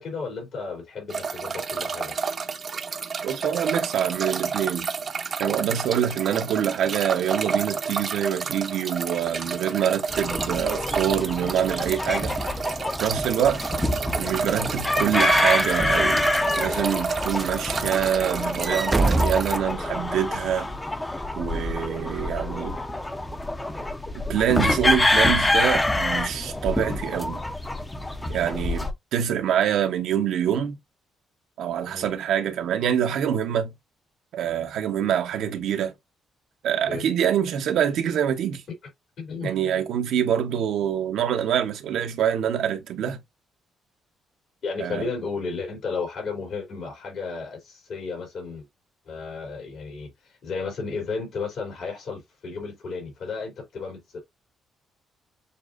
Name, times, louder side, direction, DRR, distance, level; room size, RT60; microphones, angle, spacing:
voice 1, 0.0-2.2 31.9-32.1 36.9-37.0 39.2-39.5 44.6-48.7 49.0-54.2, left 4 dB, 65° left, 2.9 m, -33 dB
sound 1, 1.1-19.6, right 5 dB, 45° right, 0.8 m, -31 dB
voice 2, 3.2-4.9 5.4-12.3 13.0-13.6 14.2-20.7 21.4-22.8 24.1-27.4 28.3-30.8 31.6-33.7 34.3-35.9 36.6-38.6 39.4-43.2 44.8-45.1, right 9 dB, 80° right, 1.0 m, -25 dB
sound 2, 10.1-28.9, left 2 dB, 15° left, 0.7 m, -26 dB
Walk footsteps / Slam, 10.4-16.2 16.7-16.9 17.3-20.3, right 2 dB, 20° right, 0.5 m, -30 dB
6.8 x 2.6 x 2.5 m
cardioid pair, 90°, 0 cm